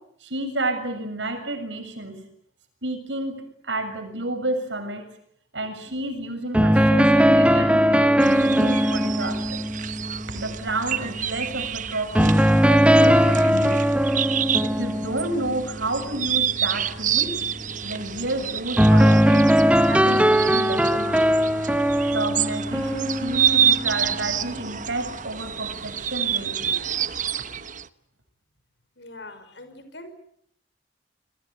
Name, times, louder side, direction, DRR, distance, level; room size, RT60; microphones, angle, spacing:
voice 1, 0.2-2.2 2.8-5.1 5.5-9.6 10.3-12.4 12.7-13.8 14.6-17.4 17.8-21.2 22.1-26.8, right 2 dB, 85° right, 7 dB, 6.9 m, -30 dB
sound 1, 6.5-11.4 12.1-15.9 18.8-24.3, equal, 5° right, 1.4 m, -19 dB
sound 2, 8.2-27.9, right 9 dB, 45° right, 1.0 m, -28 dB
voice 2, 29.0-30.1, left 2 dB, 75° left, 10 dB, 5.8 m, -42 dB
28.5 x 23.0 x 8.2 m, 0.69 s
head